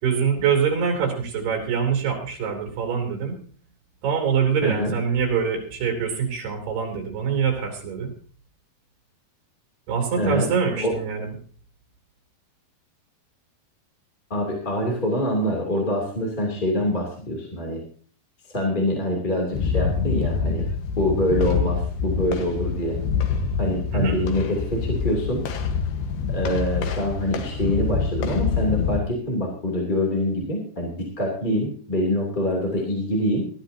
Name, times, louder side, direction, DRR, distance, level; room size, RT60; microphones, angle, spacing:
voice 1, 0.0-3.4 4.0-8.1 9.9-11.3 23.9-24.2, right 6 dB, 90° right, 3 dB, 5.2 m, -24 dB
voice 2, 4.6-5.0 10.2-10.5 10.8-10.9 14.3-17.8 18.5-20.7 21.0-23.0 23.6-25.4 26.3-33.5, left 1 dB, 15° left, -1 dB, 2.5 m, -25 dB
sound 1, 19.5-29.0, left 6 dB, 85° left, 3.3 m, -26 dB
20.0 x 13.0 x 2.8 m, 0.43 s
omnidirectional pair, 4.5 m